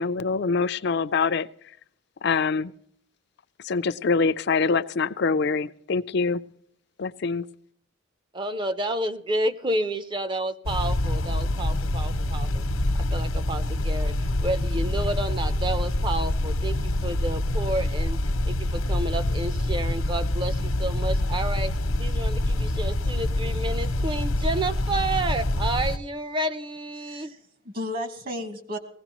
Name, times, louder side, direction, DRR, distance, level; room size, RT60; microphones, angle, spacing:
voice 1, 0.0-1.5 2.2-2.7 3.6-6.4 7.0-7.5, left 4 dB, 55° left, 14 dB, 0.5 m, -24 dB
voice 2, 8.3-12.6 13.1-14.1 14.4-18.2 18.4-21.7 22.0-27.3, right 1 dB, 25° right, 12 dB, 0.6 m, -30 dB
sound 1, 10.7-26.0, left 1 dB, 85° left, 1.0 m, -26 dB
voice 3, 27.0-28.8, left 1 dB, 45° right, 6 dB, 1.8 m, -34 dB
20.0 x 16.5 x 3.0 m, 0.69 s
head